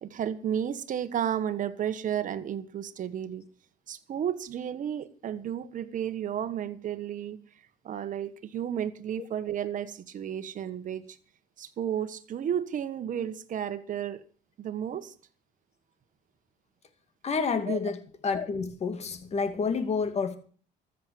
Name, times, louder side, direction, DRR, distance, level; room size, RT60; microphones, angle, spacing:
voice 1, 0.0-3.4 3.9-7.4 7.8-11.2 11.6-14.2 14.6-15.1 17.7-17.8, right 9 dB, 50° right, 1.4 m, -32 dB
voice 2, 17.2-20.4, left 5 dB, 40° left, 2.3 m, -29 dB
13.5 x 7.7 x 9.4 m
cardioid pair, 110°, 17 cm